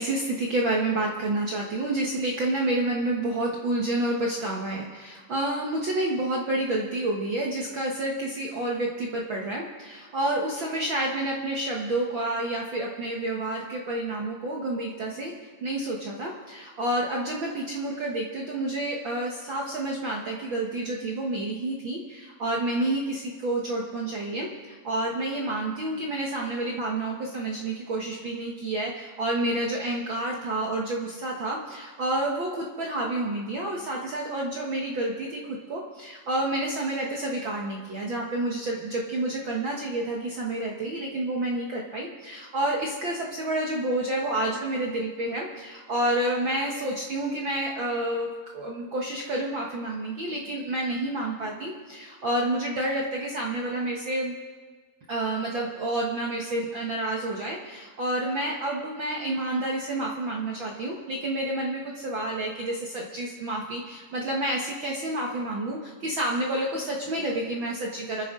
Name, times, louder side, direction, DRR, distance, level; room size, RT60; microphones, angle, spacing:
voice 1, 0.0-15.3 15.6-54.3 55.1-68.2, right 1 dB, 60° right, -2 dB, 1.3 m, -29 dB
27.5 x 10.0 x 3.7 m, 1.5 s
omnidirectional pair, 3.9 m